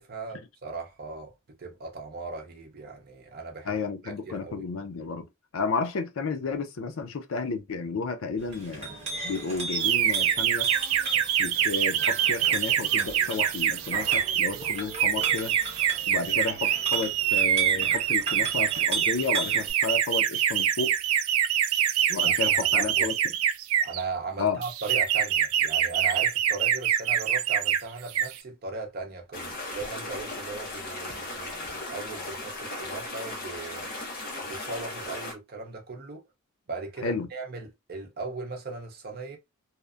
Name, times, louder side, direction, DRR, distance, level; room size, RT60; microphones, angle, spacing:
voice 1, 0.0-1.3 1.6-3.7 4.0-4.7 22.2-23.1 23.8-33.9 34.4-36.2 36.7-39.4, right 3 dB, 50° right, 0.6 m, -38 dB
voice 2, 3.7-5.3 5.5-8.9 9.2-10.7 11.4-15.5 16.1-21.0 22.1-23.1 24.4-24.6 37.0-37.3, left 4 dB, 80° left, 0.5 m, -32 dB
Chink clink, 8.4-19.7, right 4 dB, 30° right, 1.0 m, -37 dB
sound 1, 9.7-24.0 24.6-27.8 28.1-28.4, right 10 dB, 80° right, 0.3 m, -25 dB
sound 2, 29.3-35.3, left 2 dB, 45° left, 0.8 m, -37 dB
2.8 x 2.1 x 2.3 m
head